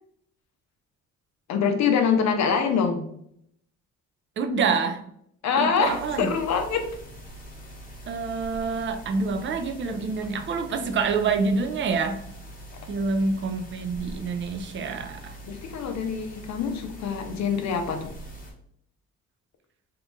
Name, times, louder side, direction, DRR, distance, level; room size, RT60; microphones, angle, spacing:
voice 1, 1.5-3.0 5.4-6.9 15.4-18.1, left 6 dB, 65° left, 6 dB, 0.6 m, -25 dB
voice 2, 4.4-5.0 5.6-6.3 8.1-12.2 12.9-15.4, right 4 dB, 40° right, 5 dB, 0.5 m, -27 dB
sound 1, 5.8-18.5, equal, 30° left, 1.2 m, -43 dB
2.8 x 2.4 x 3.6 m, 0.70 s
cardioid pair, 90°, 30 cm